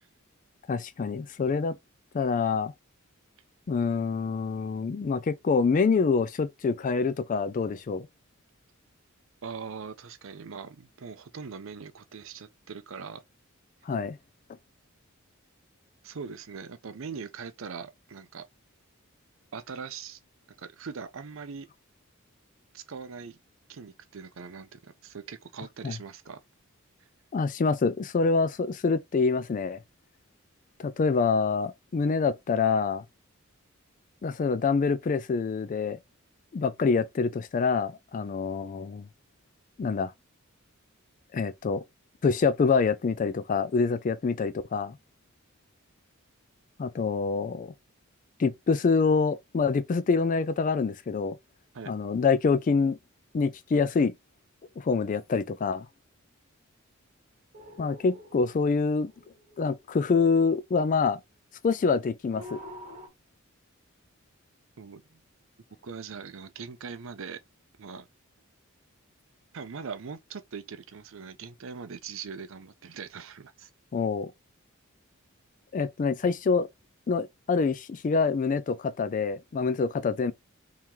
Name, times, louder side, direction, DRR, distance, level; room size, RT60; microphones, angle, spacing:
voice 1, 0.7-1.7 2.1-2.7 3.7-8.1 13.9-14.2 25.8-25.9 27.3-29.8 30.8-33.0 34.2-36.0 36.5-39.1 39.8-40.1 41.3-41.8 42.2-45.0 46.8-47.7 48.4-51.4 51.9-53.0 53.3-54.1 54.8-55.9 57.8-59.1 59.6-61.2 61.6-62.6 73.9-74.3 75.7-76.7 77.1-80.3, left 4 dB, 40° left, 0.3 m, -26 dB
voice 2, 9.4-13.2 16.0-18.5 19.5-20.2 20.6-21.7 22.7-23.4 23.7-26.4 51.7-51.9 64.8-65.2 65.8-67.4 67.8-68.1 69.5-73.7, right 5 dB, 65° right, 0.6 m, -41 dB
sound 1, 57.5-60.1 62.3-63.1, left 1 dB, 35° right, 1.3 m, -47 dB
3.6 x 2.9 x 3.1 m
head